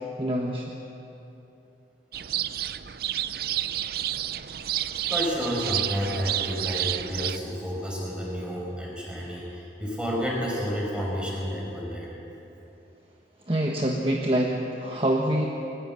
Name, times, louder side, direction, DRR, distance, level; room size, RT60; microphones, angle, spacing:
voice 1, 0.2-0.6 13.5-15.5, right 1 dB, 30° right, 0 dB, 1.4 m, -25 dB
sound 1, 2.1-7.4, right 12 dB, 55° right, 0.5 m, -30 dB
voice 2, 5.1-12.1, equal, 5° right, -3 dB, 5.9 m, -30 dB
22.0 x 20.0 x 7.7 m, 2.9 s
head